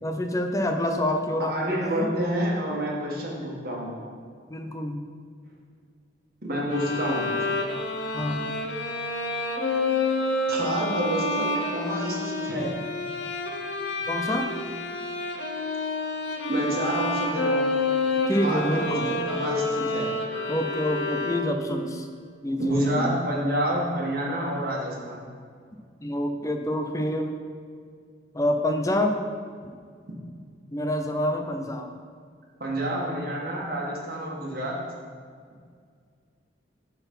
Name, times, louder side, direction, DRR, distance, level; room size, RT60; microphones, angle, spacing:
voice 1, 0.0-2.1 4.5-5.0 8.1-8.6 14.1-14.5 18.3-19.2 20.5-22.1 22.4-23.1 26.0-27.4 28.3-29.2 30.7-31.9, left 1 dB, 20° left, 5 dB, 0.5 m, -27 dB
voice 2, 1.5-3.9 6.4-7.4 10.5-12.7 16.5-17.6 18.4-20.1 22.6-25.2 32.6-34.8, right 1 dB, 55° right, -3 dB, 1.6 m, -28 dB
sound 1, 6.7-21.8, left 2 dB, 75° left, 0.8 m, -29 dB
8.2 x 4.1 x 5.4 m, 2.1 s
head